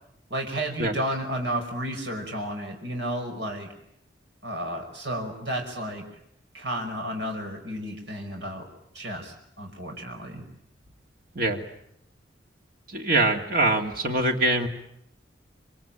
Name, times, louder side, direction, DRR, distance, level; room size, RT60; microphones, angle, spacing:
voice 1, 0.3-3.7 4.4-6.1 6.5-8.7 8.9-10.4, right 1 dB, 70° right, 2 dB, 5.7 m, -32 dB
voice 2, 12.9-14.7, right 2 dB, 50° right, 3 dB, 2.7 m, -23 dB
26.5 x 25.0 x 9.0 m, 0.75 s
head